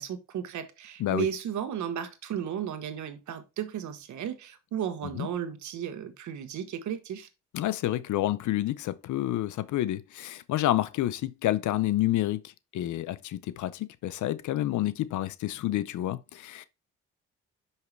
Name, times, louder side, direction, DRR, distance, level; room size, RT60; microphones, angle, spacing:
voice 1, 0.0-7.3, right 9 dB, 70° right, 1.3 m, -34 dB
voice 2, 7.5-16.6, left 14 dB, 75° left, 0.7 m, -29 dB
5.8 x 5.7 x 3.3 m
cardioid pair, 90°, 30 cm